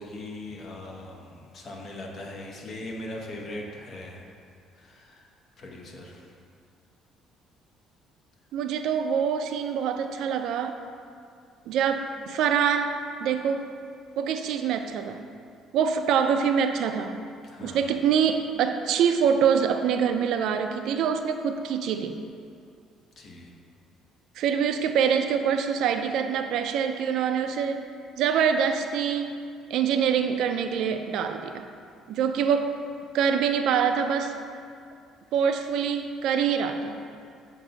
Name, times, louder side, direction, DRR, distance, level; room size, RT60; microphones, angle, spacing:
voice 1, 0.0-4.3 4.7-5.3 5.6-6.3 17.4-17.9 23.2-23.5, left 1 dB, 45° left, 0 dB, 0.9 m, -40 dB
voice 2, 8.5-10.8 11.7-13.7 14.2-15.2 15.7-17.2 17.6-22.2 24.4-27.8 28.2-29.4 29.7-31.6 32.1-32.8 33.1-34.3 35.3-37.0, right 7 dB, 70° right, 7 dB, 0.4 m, -25 dB
7.3 x 2.6 x 5.1 m, 2.3 s
cardioid pair, 115°, 0 cm